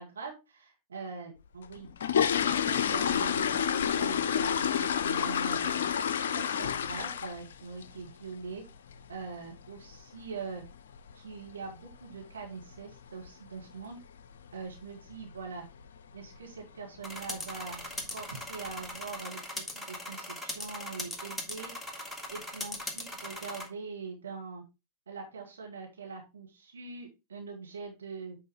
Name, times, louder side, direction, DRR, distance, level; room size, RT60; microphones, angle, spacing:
voice 1, 0.0-1.9 2.4-5.9 6.3-8.6 9.1-10.6 11.1-14.0 14.5-15.7 16.1-21.9 22.3-24.6 25.1-28.4, right 4 dB, 70° right, 1 dB, 1.9 m, -43 dB
sound 1, 1.6-7.5 7.8-8.1 8.5-8.6 8.9-9.1 9.4-9.7 9.9-10.0 10.6-10.7 11.0-11.1 11.6-11.9 12.2-12.3 12.7-12.9 13.2-13.3 13.8-13.9 14.5-14.8 15.1-15.4 15.8-15.9 16.3-16.4 17.2-17.3 17.7-18.2 18.7-18.8, left 8 dB, 60° left, 0.5 m, -29 dB
sound 2, 17.0-23.7, left 1 dB, 5° left, 1.9 m, -40 dB
8.7 x 4.6 x 3.5 m, 0.25 s
figure-of-eight pair, 90°, 0 cm